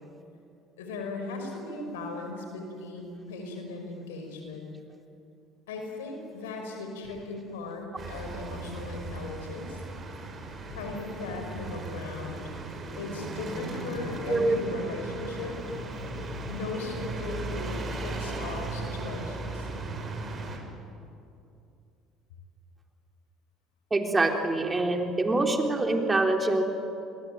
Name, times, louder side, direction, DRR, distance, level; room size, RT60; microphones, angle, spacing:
voice 1, 0.8-4.7 5.7-9.8 10.7-12.4 13.0-15.6 16.2-19.7, left 3 dB, 80° left, 3 dB, 5.5 m, -38 dB
sound 1, 8.0-20.6, right 2 dB, 40° right, 6.0 m, -37 dB
voice 2, 23.9-26.6, right 2 dB, 20° right, 3 dB, 3.7 m, -25 dB
28.5 x 22.5 x 9.1 m, 2.6 s
hypercardioid pair, 60°, 0 cm